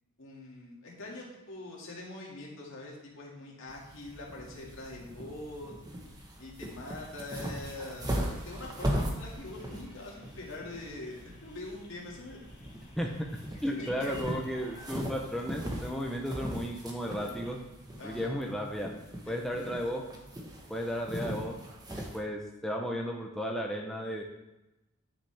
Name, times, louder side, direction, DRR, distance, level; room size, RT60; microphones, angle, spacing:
voice 1, 0.2-5.8 6.4-8.1 8.4-12.4 13.8-14.1 18.0-18.3 19.2-19.9, left 2 dB, 65° left, -3 dB, 2.1 m, -44 dB
sound 1, 3.7-22.2, equal, 20° right, 1.1 m, -39 dB
sound 2, 9.5-15.0, left 2 dB, 30° left, 2.7 m, -55 dB
voice 2, 13.6-17.6 18.0-18.9 19.3-20.0 20.7-21.6 22.0-24.2, equal, ahead, 0 dB, 0.6 m, -34 dB
9.9 x 5.9 x 3.4 m, 0.99 s
head